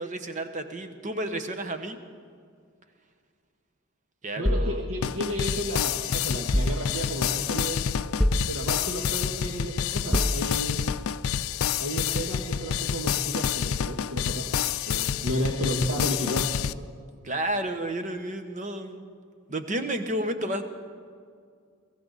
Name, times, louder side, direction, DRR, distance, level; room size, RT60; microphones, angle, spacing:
voice 1, 0.0-2.0 4.2-4.9 17.2-19.1 19.5-20.6, right 1 dB, 35° right, 8 dB, 1.0 m, -31 dB
sound 1, 4.4-5.8 6.5-7.4 8.2-9.1 10.1-10.9, left 1 dB, ahead, 0.5 m, -28 dB
voice 2, 4.4-7.8 8.5-10.8 11.8-14.5 14.9-16.5, equal, 80° right, 0 dB, 1.5 m, -32 dB
sound 2, 5.0-16.7, left 8 dB, 85° left, 0.4 m, -28 dB
22.5 x 15.5 x 4.0 m, 2.1 s
head